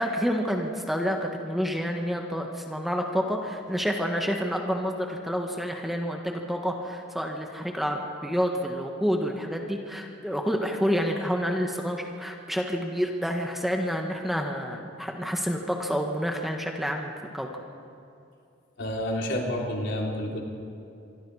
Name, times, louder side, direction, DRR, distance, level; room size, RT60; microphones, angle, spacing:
voice 1, 0.0-17.5, equal, ahead, 2 dB, 1.5 m, -29 dB
voice 2, 18.8-20.4, left 1 dB, 65° left, -1 dB, 3.7 m, -29 dB
24.5 x 24.5 x 4.9 m, 2.5 s
head